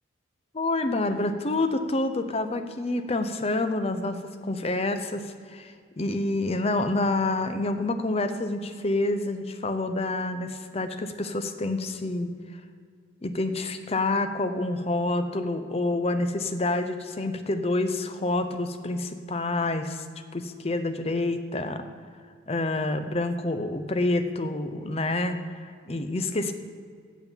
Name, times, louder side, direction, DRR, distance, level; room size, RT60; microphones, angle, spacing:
voice 1, 0.5-12.3 13.2-20.0 20.3-21.8 22.5-26.5, left 2 dB, 30° left, 8 dB, 0.6 m, -28 dB
8.2 x 7.2 x 7.1 m, 2.1 s
head